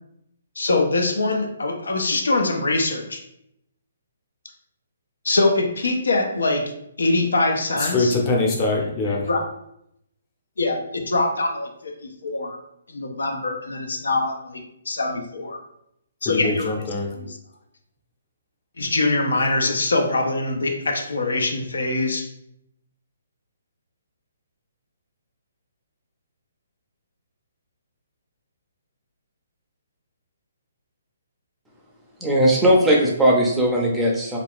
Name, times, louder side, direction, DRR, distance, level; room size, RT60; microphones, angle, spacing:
voice 1, 0.6-3.2 5.2-6.7 7.0-8.2 9.0-9.5 10.6-11.9 12.2-12.6 12.9-14.6 14.9-15.6 16.2-16.7 17.1-17.4 18.8-22.2, left 2 dB, 90° left, 3 dB, 0.5 m, -23 dB
voice 2, 7.8-9.3 16.2-17.1, left 3 dB, 25° left, -1 dB, 0.7 m, -23 dB
voice 3, 32.2-34.4, right 1 dB, 5° right, -2 dB, 0.5 m, -18 dB
2.4 x 2.3 x 3.5 m, 0.77 s
hypercardioid pair, 155°, 0 cm